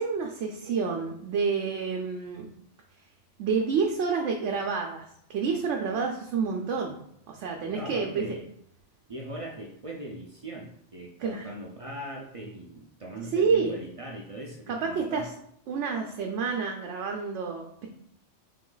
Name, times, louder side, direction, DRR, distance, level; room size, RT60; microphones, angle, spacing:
voice 1, 0.0-2.5 3.4-7.0 7.3-8.2 11.2-11.5 13.3-13.8 14.7-15.3 15.7-17.9, right 5 dB, 80° right, 1 dB, 0.9 m, -29 dB
voice 2, 7.7-8.4 9.1-15.2, right 1 dB, 45° right, -1 dB, 0.4 m, -40 dB
3.7 x 3.0 x 3.8 m, 0.72 s
omnidirectional pair, 1.2 m